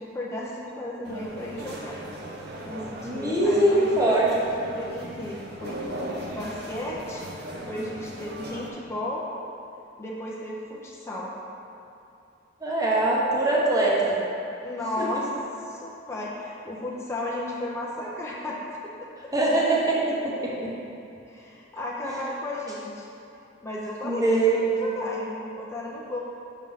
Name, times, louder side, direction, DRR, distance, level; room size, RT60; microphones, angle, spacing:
voice 1, 0.0-1.9 2.6-4.3 4.7-5.8 6.3-9.2 10.0-11.3 14.6-15.3 15.7-18.6 18.8-19.1 21.3-23.1 23.6-24.4 24.8-26.2, left 1 dB, 15° left, -5 dB, 0.6 m, -34 dB
sound 1, 1.0-8.7, equal, 55° right, 0.8 m, -38 dB
voice 2, 3.0-4.3 12.6-14.2 15.0-15.1 19.3-20.7 24.0-24.9, right 2 dB, 20° right, -5 dB, 1.0 m, -22 dB
6.1 x 5.5 x 4.0 m, 2.7 s
head